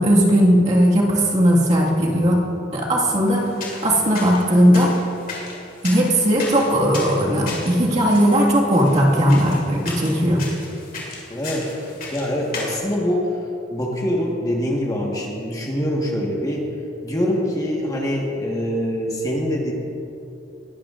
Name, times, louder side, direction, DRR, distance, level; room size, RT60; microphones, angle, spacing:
voice 1, 0.0-2.4 2.7-3.4 3.8-4.9 5.8-10.4, equal, 35° right, -4 dB, 1.9 m, -17 dB
sound 1, 3.3-12.8, left 3 dB, 50° left, 2.4 m, -36 dB
voice 2, 11.3-13.3 13.7-16.7 17.0-19.7, equal, 20° left, -2 dB, 1.4 m, -24 dB
19.5 x 12.0 x 2.5 m, 2.8 s
head